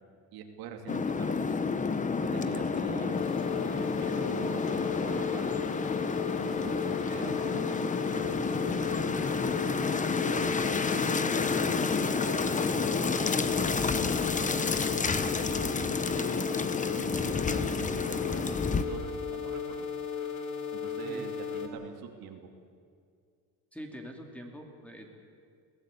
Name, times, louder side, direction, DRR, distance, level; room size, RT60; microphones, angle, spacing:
voice 1, 0.3-1.8 2.2-3.3 3.6-5.5 6.1-9.8 10.1-10.9 11.6-13.9 14.4-16.6 16.9-19.9 20.7-22.4, right 7 dB, 70° right, 4 dB, 2.8 m, -44 dB
sound 1, 0.9-18.8, left 5 dB, 20° left, 1.0 m, -30 dB
sound 2, 3.1-21.7, left 6 dB, 70° left, 2.7 m, -36 dB
voice 2, 23.7-25.1, equal, 5° left, 2 dB, 2.6 m, -44 dB
21.5 x 16.5 x 8.6 m, 2.2 s
cardioid pair, 125°, 38 cm